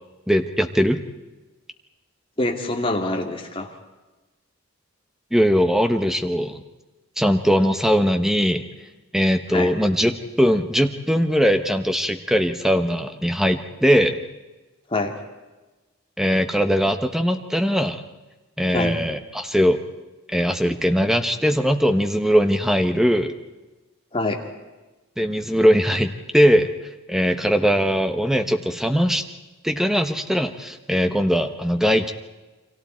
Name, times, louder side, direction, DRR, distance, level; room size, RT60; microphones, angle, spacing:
voice 1, 0.3-1.0 5.3-6.6 7.2-8.6 9.1-14.2 16.2-18.0 18.6-19.8 20.3-23.3 25.2-26.7 27.1-29.2 29.6-32.1, equal, ahead, 7 dB, 1.1 m, -20 dB
voice 2, 2.4-3.7 9.5-9.7 14.9-15.1 18.7-18.9 24.1-24.4, left 2 dB, 25° left, 2 dB, 2.3 m, -25 dB
30.0 x 24.0 x 4.5 m, 1.2 s
head